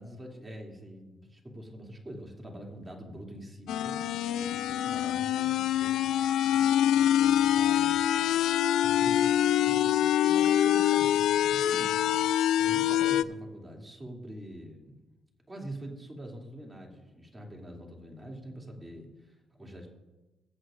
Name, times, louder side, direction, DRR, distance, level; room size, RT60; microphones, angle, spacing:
voice 1, 0.0-6.5 6.9-8.1 8.8-12.2 12.6-15.1 15.5-19.9, equal, 20° right, 0 dB, 2.8 m, -45 dB
sound 1, 3.7-13.2, left 11 dB, 80° left, 0.4 m, -25 dB
22.0 x 7.9 x 2.5 m, 1.1 s
cardioid pair, 90°, 0 cm